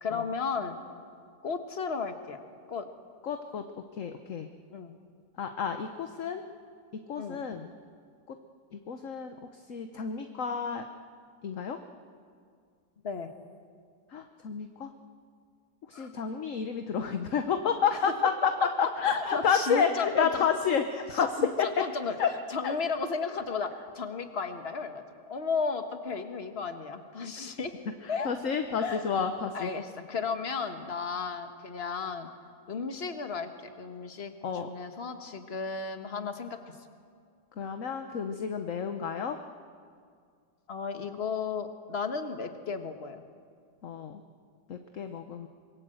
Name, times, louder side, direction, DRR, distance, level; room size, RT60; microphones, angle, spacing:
voice 1, 0.0-0.8 1.4-2.4 2.7-2.9 4.7-4.9 7.2-7.4 13.0-13.3 15.9-16.1 17.9-18.0 19.0-20.5 21.4-22.2 22.5-27.7 28.1-28.4 28.8-29.0 29.5-32.3 32.7-33.5 33.8-34.4 34.6-36.8 40.7-43.2, left 5 dB, 35° left, 7 dB, 1.6 m, -34 dB
voice 2, 3.2-3.7 3.9-4.5 5.4-6.4 6.9-7.7 8.3-8.4 8.7-10.9 11.4-11.8 14.1-14.9 15.9-18.5 18.8-21.7 22.2-22.3 22.6-22.7 28.0-29.7 34.4-34.7 37.6-39.4 43.8-44.2 44.7-45.5, left 6 dB, 50° left, 7 dB, 1.2 m, -30 dB
26.0 x 21.5 x 7.8 m, 2.1 s
omnidirectional pair, 1.9 m